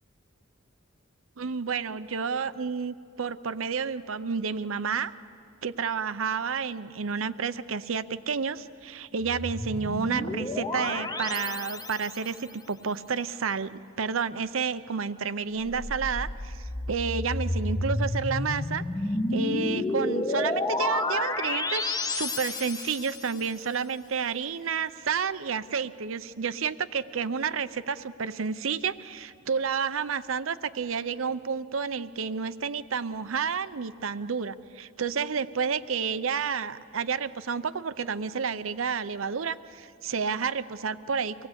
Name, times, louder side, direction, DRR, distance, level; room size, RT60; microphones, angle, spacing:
voice 1, 1.4-5.1 5.6-18.8 19.3-41.5, right 6 dB, 85° right, 14 dB, 0.7 m, -30 dB
sound 1, 9.2-12.4 15.7-23.3, left 2 dB, 20° left, 0.8 m, -31 dB
25.0 x 19.0 x 8.1 m, 2.5 s
head